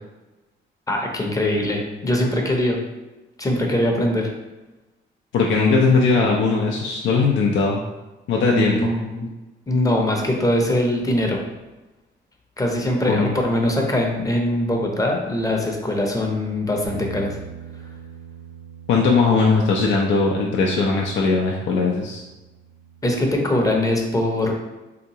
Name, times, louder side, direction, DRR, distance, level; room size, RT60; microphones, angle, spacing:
voice 1, 0.9-2.8 3.4-4.3 8.5-9.3 9.7-11.4 12.6-17.4 23.0-24.5, left 1 dB, 15° left, 1 dB, 0.7 m, -22 dB
voice 2, 5.3-7.8 8.3-8.9 13.0-13.3 18.9-22.2, left 4 dB, 70° left, -1 dB, 0.5 m, -19 dB
Bass guitar, 16.8-23.1, right 6 dB, 70° right, 0.6 m, -42 dB
3.5 x 2.9 x 2.8 m, 1.1 s
cardioid pair, 90°, 20 cm